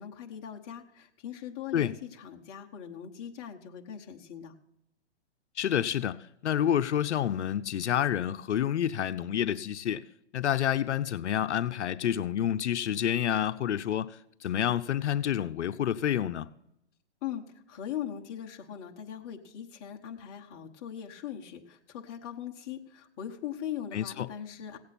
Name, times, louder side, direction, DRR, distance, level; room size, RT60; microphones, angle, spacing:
voice 1, 0.0-4.5 17.2-24.8, left 10 dB, 20° left, 1.1 m, -40 dB
voice 2, 5.6-10.0 10.3-16.5 23.9-24.3, left 10 dB, 75° left, 0.7 m, -29 dB
16.5 x 8.6 x 4.2 m
hypercardioid pair, 160°, 35 cm